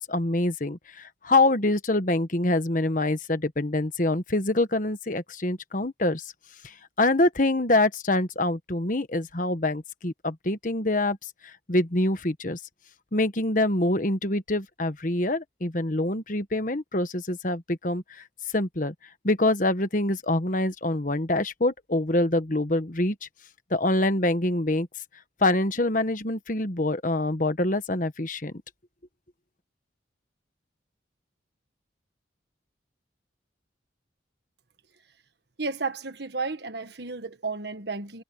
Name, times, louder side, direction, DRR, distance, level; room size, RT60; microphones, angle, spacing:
voice 1, 0.1-6.2 6.6-11.2 11.7-12.6 13.1-18.2 18.5-18.9 19.2-23.3 23.7-24.9 25.4-28.5, left 2 dB, 45° left, 1.3 m, -25 dB
voice 2, 35.6-38.2, right 4 dB, 60° right, 1.4 m, -32 dB
head